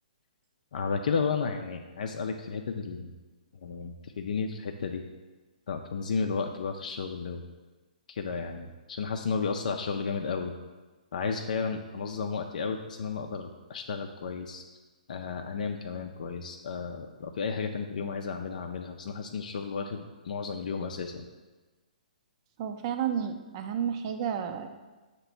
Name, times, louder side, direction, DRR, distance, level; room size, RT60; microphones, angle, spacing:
voice 1, 0.7-3.1 3.6-5.0 5.7-7.4 8.1-10.5 11.1-14.6 15.1-21.1, left 5 dB, 65° left, 3 dB, 0.5 m, -33 dB
voice 2, 22.6-24.7, right 8 dB, 40° right, 7 dB, 0.5 m, -31 dB
5.9 x 3.0 x 5.6 m, 1.2 s
hypercardioid pair, 135°, 5 cm